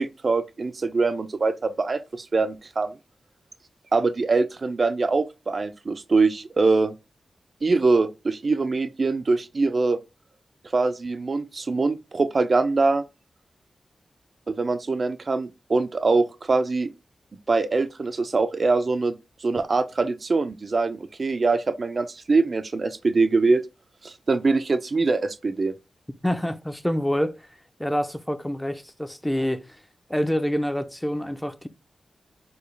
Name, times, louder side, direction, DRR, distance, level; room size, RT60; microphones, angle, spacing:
voice 1, 0.0-3.0 3.9-6.9 7.6-10.0 10.7-13.0 14.5-16.9 17.5-19.1 19.4-23.6 24.0-25.7, right 3 dB, 55° right, 0.4 m, -23 dB
voice 2, 26.2-27.4 27.8-29.6 30.1-31.7, equal, 10° left, 0.5 m, -26 dB
4.5 x 2.2 x 3.2 m
cardioid pair, 50°, 0 cm